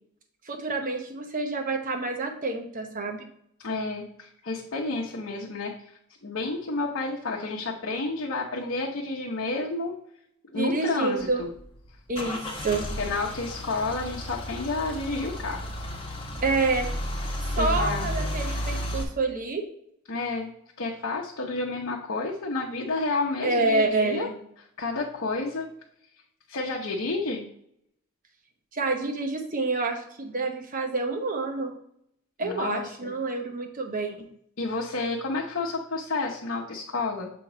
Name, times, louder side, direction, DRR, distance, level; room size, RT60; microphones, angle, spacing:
voice 1, 0.5-3.3 10.5-11.4 12.1-12.9 16.4-16.9 17.5-19.6 23.4-24.3 28.7-31.7 32.4-34.2, right 3 dB, 40° right, 4 dB, 0.9 m, -28 dB
voice 2, 3.6-10.0 10.5-11.5 13.0-15.6 17.5-18.1 20.1-20.5 20.8-24.3 24.8-25.7 26.5-27.5 32.4-33.1 34.6-37.3, left 3 dB, 70° left, -3 dB, 0.8 m, -30 dB
Car / Engine starting / Idling, 11.2-19.0, equal, 25° left, 0.9 m, -32 dB
7.0 x 3.0 x 4.9 m, 0.71 s
head